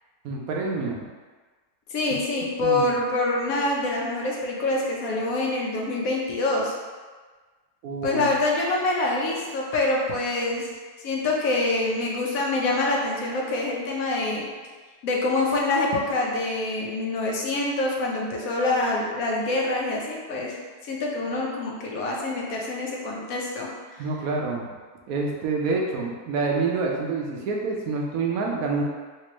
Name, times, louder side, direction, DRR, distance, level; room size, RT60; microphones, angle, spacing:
voice 1, 0.2-1.1 2.6-2.9 7.8-8.3 24.0-24.7 25.1-28.8, right 4 dB, 70° right, -1 dB, 1.0 m, -27 dB
voice 2, 1.9-6.7 8.0-10.8 11.0-14.5 15.0-24.1, left 2 dB, 65° left, -2 dB, 1.1 m, -26 dB
3.3 x 2.8 x 3.0 m, 1.4 s
omnidirectional pair, 1.7 m